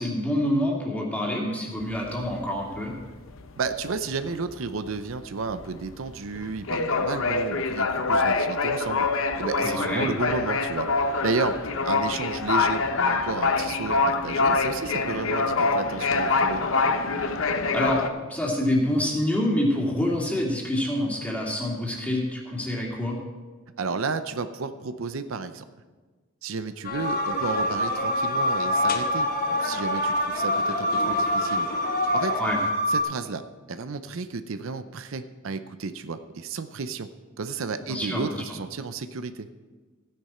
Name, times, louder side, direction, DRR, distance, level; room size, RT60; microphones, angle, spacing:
voice 1, 0.0-2.9 9.6-10.1 17.7-18.0 18.3-23.2 32.4-32.6 37.9-38.3, left 1 dB, 5° left, -3 dB, 2.6 m, -26 dB
sound 1, 1.8-3.0 3.4-3.6 3.9-18.1, left 3 dB, 75° left, 0.8 m, -25 dB
voice 2, 3.6-9.0 9.4-10.9 11.2-11.6 11.8-16.6 23.8-25.6 26.4-31.7 32.1-32.3 32.9-33.4 33.7-37.1 37.4-39.5, right 4 dB, 80° right, 10 dB, 0.6 m, -32 dB
sound 2, 26.8-32.7, left 4 dB, 45° left, 1.0 m, -31 dB
sound 3, 27.0-33.0, right 1 dB, 55° right, 2.0 m, -26 dB
15.0 x 10.0 x 4.3 m, 1.3 s
head